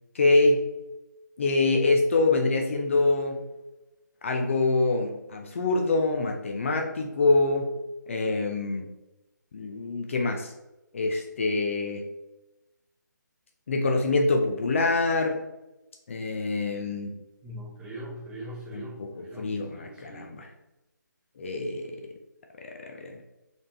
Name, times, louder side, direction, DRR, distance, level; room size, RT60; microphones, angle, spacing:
voice 1, 0.1-0.6 1.4-3.4 4.2-7.7 8.1-8.9 9.5-10.5 10.9-12.0 13.7-15.4 16.1-17.1 18.7-20.5 21.4-22.0 22.6-23.2, left 3 dB, 40° left, 3 dB, 0.5 m, -25 dB
voice 2, 17.4-20.3, right 1 dB, 10° right, -5 dB, 0.8 m, -41 dB
4.1 x 3.4 x 2.8 m, 1.0 s
figure-of-eight pair, 150°, 10 cm